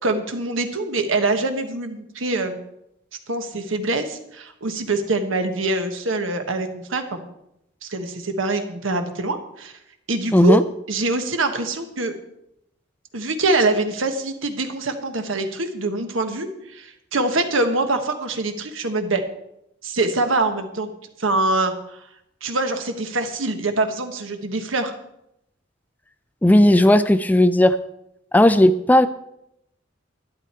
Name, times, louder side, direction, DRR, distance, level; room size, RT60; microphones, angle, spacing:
voice 1, 0.0-2.6 3.3-7.3 7.8-9.7 10.1-10.6 10.9-12.1 13.1-19.2 19.8-20.9 21.2-22.0 22.4-24.9, right 2 dB, 90° right, 7 dB, 1.3 m, -24 dB
voice 2, 10.3-10.6 26.4-27.8 28.3-29.1, left 1 dB, 10° left, 11 dB, 0.4 m, -14 dB
12.0 x 10.5 x 4.4 m, 0.81 s
head